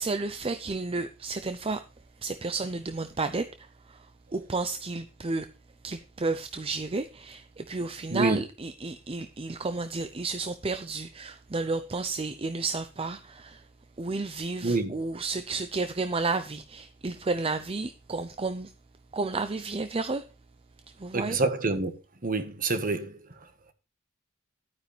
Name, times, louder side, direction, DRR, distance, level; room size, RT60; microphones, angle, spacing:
voice 1, 0.0-1.8 2.2-4.1 4.3-5.5 5.8-13.6 14.0-18.7 19.1-20.2 21.0-21.4, right 3 dB, 30° right, 0.6 m, -32 dB
voice 2, 8.1-8.4 14.6-14.9 21.1-21.9 22.2-23.1, right 3 dB, 45° right, 1.4 m, -27 dB
11.5 x 9.4 x 3.3 m
head